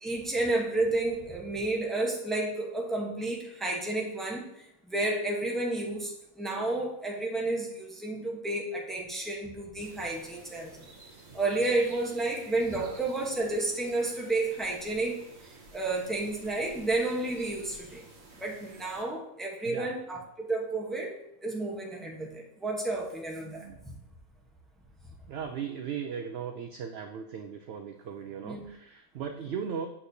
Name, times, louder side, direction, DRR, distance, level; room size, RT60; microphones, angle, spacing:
voice 1, 0.0-4.5 4.9-10.9 11.3-15.3 15.7-18.0 18.3-24.0 28.4-28.6, right 2 dB, ahead, -2 dB, 0.8 m, -31 dB
sound 1, 9.8-19.0, right 2 dB, 50° right, 1.5 m, -52 dB
voice 2, 19.5-19.9 23.4-24.1 25.3-29.9, right 7 dB, 70° right, 5 dB, 0.6 m, -38 dB
8.5 x 6.4 x 2.7 m, 0.83 s
omnidirectional pair, 1.5 m